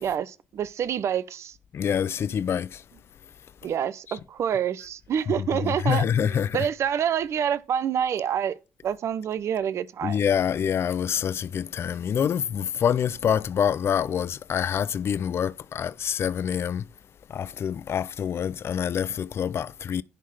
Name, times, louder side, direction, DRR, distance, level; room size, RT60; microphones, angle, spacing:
voice 1, 0.0-1.5 3.6-10.2, right 8 dB, 60° right, 0.7 m, -27 dB
voice 2, 1.7-2.8 4.1-4.2 5.6-6.7 10.0-16.9 17.3-20.0, left 8 dB, 50° left, 0.4 m, -26 dB
10.5 x 3.7 x 6.2 m
hypercardioid pair, 50°, 5 cm